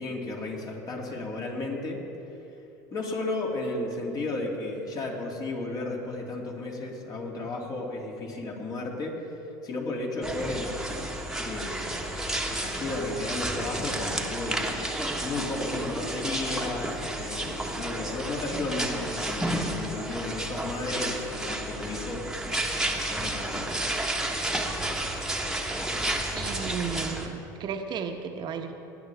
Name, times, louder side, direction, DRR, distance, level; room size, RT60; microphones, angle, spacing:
voice 1, 0.0-2.0 2.9-10.9 11.4-12.0 12.4-14.6 15.2-22.5 22.9-23.7, left 2 dB, 40° left, -1 dB, 2.7 m, -34 dB
sound 1, 10.2-27.3, right 1 dB, 5° right, 1.4 m, -31 dB
voice 2, 26.3-28.7, right 6 dB, 45° right, 6 dB, 1.1 m, -34 dB
19.0 x 9.8 x 3.5 m, 2.8 s
hypercardioid pair, 80°, 10 cm